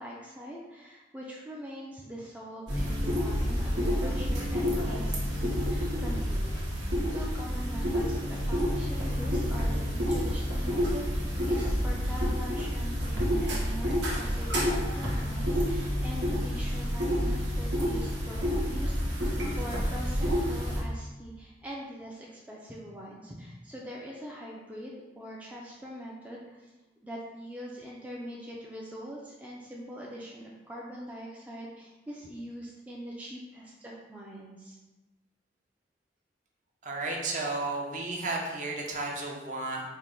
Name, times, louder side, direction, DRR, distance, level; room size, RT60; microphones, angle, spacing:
voice 1, 0.0-6.6 7.1-26.7 27.0-34.8, equal, 10° right, -4 dB, 0.3 m, -43 dB
sound 1, 2.7-20.8, equal, 85° right, 1.0 m, -29 dB
voice 2, 36.8-39.8, right 2 dB, 45° right, -1 dB, 0.6 m, -33 dB
4.4 x 2.1 x 3.6 m, 1.1 s
head